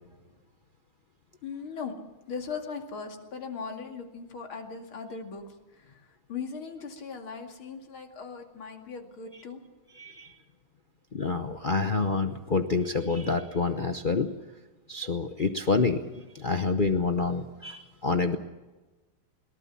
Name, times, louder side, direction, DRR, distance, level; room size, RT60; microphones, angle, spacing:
voice 1, 1.4-1.9 2.3-5.4 5.7-9.6, left 5 dB, 85° left, 3 dB, 3.2 m, -39 dB
voice 2, 10.0-10.3 11.1-14.3 14.9-18.4, left 4 dB, 50° left, 6 dB, 0.6 m, -27 dB
21.5 x 19.0 x 7.3 m, 1.2 s
omnidirectional pair, 2.2 m